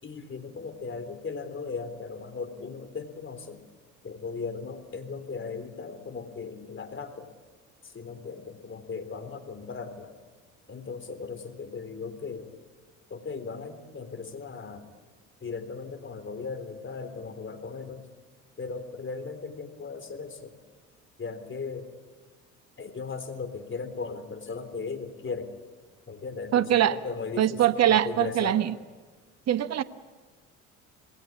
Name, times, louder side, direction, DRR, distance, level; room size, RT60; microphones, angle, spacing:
voice 1, 0.0-3.6 4.0-7.3 7.8-10.2 10.7-12.5 13.1-14.9 15.4-18.0 18.6-20.6 21.2-21.9 22.8-25.6 26.1-28.6, left 4 dB, 30° left, 8 dB, 3.7 m, -37 dB
voice 2, 26.5-27.0 27.4-28.7 29.5-29.8, right 11 dB, 45° right, 13 dB, 1.2 m, -22 dB
27.0 x 20.5 x 8.6 m, 1.4 s
hypercardioid pair, 60°, 37 cm